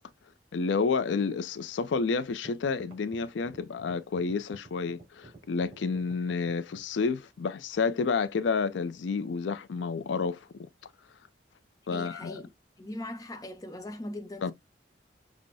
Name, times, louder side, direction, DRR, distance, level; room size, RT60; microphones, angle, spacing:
voice 1, 0.5-10.7 11.9-12.4 14.4-14.5, left 4 dB, 80° left, 0.4 m, -30 dB
sound 1, 2.3-6.9, right 3 dB, 30° right, 2.8 m, -50 dB
voice 2, 11.9-12.5 12.8-14.5, left 1 dB, 20° left, 0.6 m, -40 dB
6.1 x 2.1 x 2.6 m
head